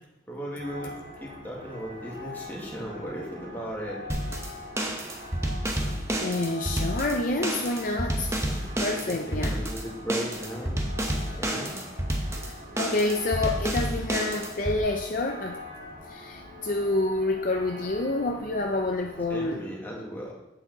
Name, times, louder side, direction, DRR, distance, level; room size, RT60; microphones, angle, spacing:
voice 1, 0.3-0.9 1.2-4.1 8.3-8.6 9.1-10.8 11.4-11.8 19.3-20.3, equal, 10° left, -4 dB, 1.7 m, -36 dB
sound 1, 0.6-19.5, left 1 dB, 45° right, 3.4 m, -44 dB
sound 2, 4.1-14.8, right 1 dB, 15° right, 0.8 m, -30 dB
voice 2, 6.2-8.3 8.8-9.6 12.8-15.6 16.1-19.6, left 2 dB, 45° left, 2 dB, 0.5 m, -28 dB
8.5 x 6.9 x 4.0 m, 0.92 s
head